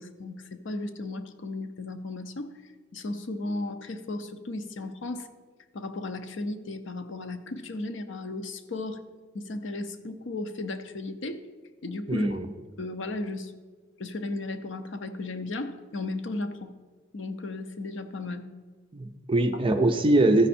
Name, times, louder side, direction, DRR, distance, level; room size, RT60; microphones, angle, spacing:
voice 1, 0.0-2.5 2.9-5.3 5.7-9.0 9.3-11.4 11.8-12.4 12.8-13.5 14.0-16.7 17.1-18.5 19.5-19.6, left 2 dB, 60° left, 9 dB, 0.6 m, -35 dB
voice 2, 12.1-12.5 18.9-20.5, right 2 dB, 25° right, 6 dB, 0.5 m, -22 dB
14.0 x 5.4 x 4.2 m, 1.4 s
head